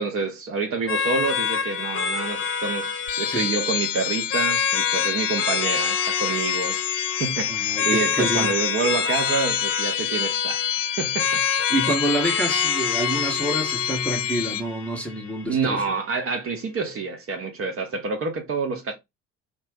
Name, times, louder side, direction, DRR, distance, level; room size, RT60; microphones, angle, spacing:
voice 1, 0.0-6.8 7.2-10.6 11.0-11.4 15.5-19.0, right 4 dB, 35° right, 0.7 m, -27 dB
sound 1, 0.9-15.8, left 6 dB, 30° left, 0.8 m, -28 dB
sound 2, 3.1-14.6, left 11 dB, 70° left, 0.5 m, -27 dB
voice 2, 7.5-8.5 11.7-15.8, right 1 dB, 5° left, 0.7 m, -27 dB
2.5 x 2.1 x 3.3 m
figure-of-eight pair, 50°, 41 cm